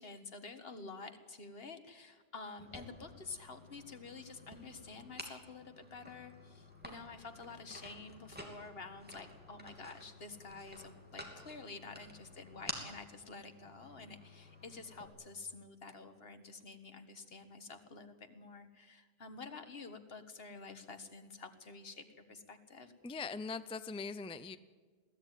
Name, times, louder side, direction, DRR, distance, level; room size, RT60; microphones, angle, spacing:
voice 1, 0.0-22.9, left 4 dB, 65° left, 8 dB, 1.7 m, -49 dB
sound 1, 2.6-15.1, equal, 10° right, 2.9 m, -51 dB
voice 2, 23.0-24.6, left 4 dB, 5° left, 12 dB, 0.4 m, -41 dB
22.0 x 16.0 x 9.2 m, 1.5 s
omnidirectional pair, 1.1 m